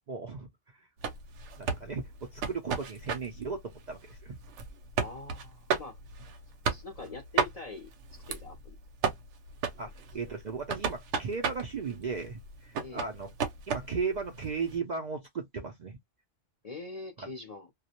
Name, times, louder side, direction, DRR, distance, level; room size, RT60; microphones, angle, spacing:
voice 1, 0.1-0.5 1.6-4.4 9.8-13.3 13.7-16.0 17.2-17.3, right 5 dB, 55° right, 0.5 m, -36 dB
sound 1, 1.0-14.7, right 5 dB, 85° right, 0.9 m, -35 dB
voice 2, 5.0-6.0 6.7-8.8 10.2-10.3 12.8-13.1 16.6-17.7, left 3 dB, 45° left, 0.5 m, -44 dB
2.3 x 2.1 x 2.8 m
omnidirectional pair, 1.2 m